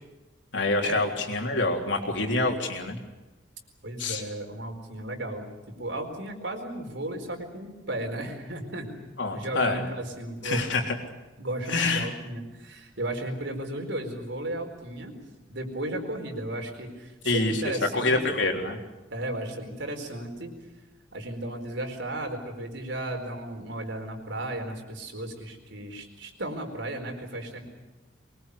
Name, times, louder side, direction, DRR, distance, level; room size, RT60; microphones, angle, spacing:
voice 1, 0.5-3.0 4.0-4.2 9.2-9.8 10.4-11.0 11.7-12.1 17.2-17.6 17.9-18.8, left 2 dB, 75° left, 2 dB, 3.6 m, -26 dB
voice 2, 3.8-5.5 5.8-8.9 9.3-10.6 11.4-15.1 15.5-18.4 19.1-20.5 21.1-27.7, right 1 dB, 70° right, 4 dB, 4.4 m, -34 dB
23.5 x 21.5 x 8.4 m, 1.1 s
head